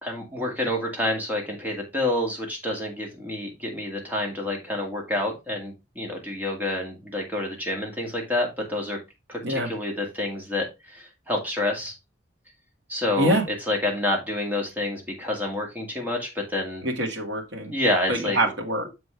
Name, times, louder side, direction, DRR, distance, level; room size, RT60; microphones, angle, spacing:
voice 1, 0.0-9.0 9.3-11.9 12.9-16.8 17.6-18.5, left 1 dB, 10° right, 0 dB, 2.1 m, -28 dB
voice 2, 16.8-17.7 18.1-18.9, right 1 dB, 60° right, 2 dB, 2.0 m, -25 dB
6.8 x 6.4 x 3.3 m, 0.24 s
head